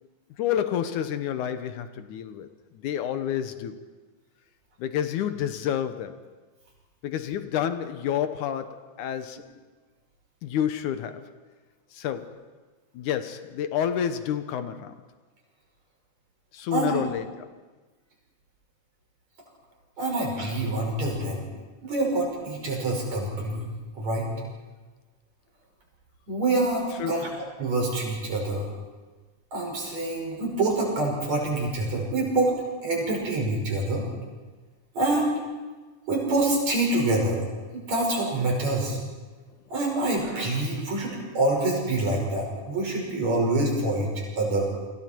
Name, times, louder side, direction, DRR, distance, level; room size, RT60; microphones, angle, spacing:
voice 1, 0.4-2.5 2.7-3.8 4.8-6.3 7.0-9.5 10.4-11.3 11.9-12.5 12.9-15.0 16.5-17.5 27.0-27.2, left 9 dB, 75° left, 2.4 m, -29 dB
voice 2, 16.7-17.1 20.0-21.4 21.8-23.7 23.9-24.3 26.3-27.3 27.6-28.7 29.5-32.5 32.8-34.1 34.9-35.3 36.1-37.4 37.7-39.0 39.7-44.1 44.4-44.7, right 2 dB, 55° right, 7.1 m, -26 dB
29.0 x 25.5 x 4.6 m
omnidirectional pair, 3.6 m